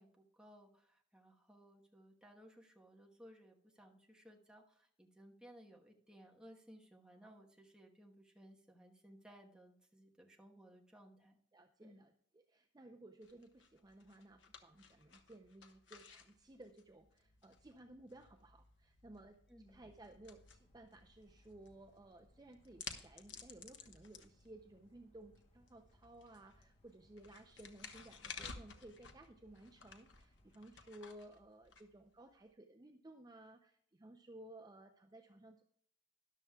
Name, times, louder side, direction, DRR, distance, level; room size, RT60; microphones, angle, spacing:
voice 1, 0.0-11.4 11.8-12.0 19.5-19.8, equal, 5° right, 0 dB, 1.2 m, -60 dB
voice 2, 11.5-19.4 19.7-35.6, right 1 dB, 20° right, 4 dB, 0.5 m, -57 dB
sound 1, 13.2-32.5, left 6 dB, 70° left, 1.1 m, -56 dB
sound 2, 19.7-30.8, left 1 dB, 30° left, 1.1 m, -70 dB
13.0 x 11.0 x 2.3 m, 0.66 s
head